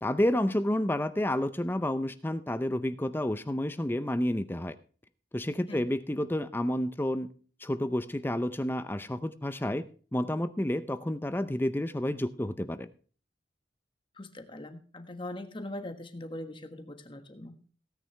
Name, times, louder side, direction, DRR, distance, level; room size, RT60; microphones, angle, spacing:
voice 1, 0.0-4.8 5.3-7.3 7.6-9.8 10.1-12.9, left 1 dB, 10° left, 13 dB, 0.5 m, -30 dB
voice 2, 14.2-17.5, left 1 dB, 30° left, 8 dB, 1.5 m, -41 dB
18.0 x 9.5 x 3.3 m, 0.39 s
head